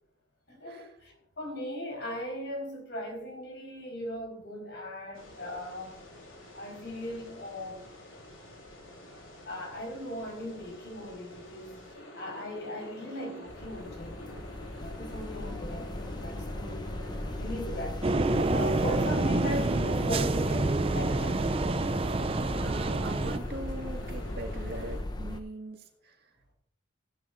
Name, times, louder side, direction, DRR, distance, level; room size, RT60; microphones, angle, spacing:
voice 1, 0.5-6.0 6.5-7.9 9.4-14.4 14.8-18.0 18.5-21.4, left 1 dB, 60° left, 4.7 m, -38 dB
sound 1, 5.1-25.0, left 1 dB, 80° left, 3.5 m, -47 dB
sound 2, 13.5-25.4, left 1 dB, 20° left, 0.8 m, -37 dB
sound 3, 18.0-23.4, right 2 dB, 30° right, 0.4 m, -28 dB
voice 2, 22.6-25.8, right 1 dB, 50° right, 1.9 m, -41 dB
15.5 x 11.0 x 2.6 m
head